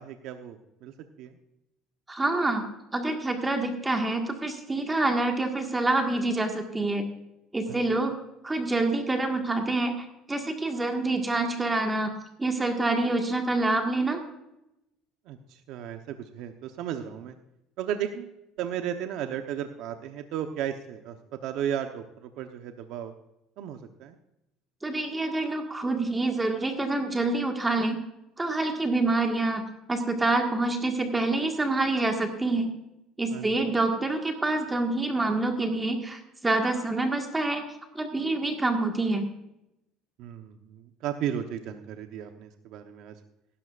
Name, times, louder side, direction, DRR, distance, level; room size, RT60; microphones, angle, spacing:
voice 1, 0.0-1.3 7.7-8.0 15.3-17.4 17.8-18.3 18.6-21.2 21.4-23.1 23.6-24.2 33.3-33.6 40.2-43.1, right 9 dB, 70° right, 6 dB, 0.9 m, -35 dB
voice 2, 2.1-2.6 2.9-7.1 7.5-8.1 8.4-12.1 12.4-14.2 24.8-28.0 28.4-29.6 29.9-32.7 33.2-37.6 37.9-39.2, right 2 dB, 15° right, 3 dB, 1.7 m, -26 dB
16.0 x 12.5 x 2.5 m, 0.88 s
supercardioid pair, 115°, 0 cm